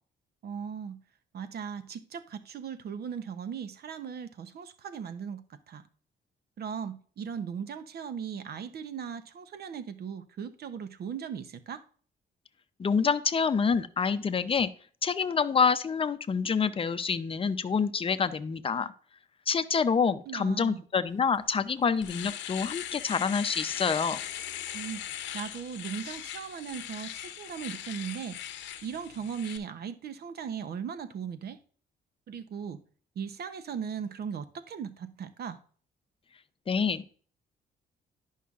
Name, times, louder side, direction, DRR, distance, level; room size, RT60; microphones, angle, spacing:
voice 1, 0.4-1.0 1.3-5.4 5.7-5.8 6.6-11.8 20.3-20.8 24.7-25.0 25.3-28.4 28.8-31.6 32.3-32.8 33.2-35.6, right 7 dB, 60° right, 0.8 m, -38 dB
voice 2, 12.8-14.7 15.0-18.9 19.5-24.2 36.7-37.1, left 5 dB, 30° left, 0.6 m, -27 dB
Domestic sounds home sounds, 21.3-21.4 21.8-29.6, left 11 dB, 85° left, 0.8 m, -39 dB
11.0 x 5.6 x 2.5 m
cardioid pair, 80°, 18 cm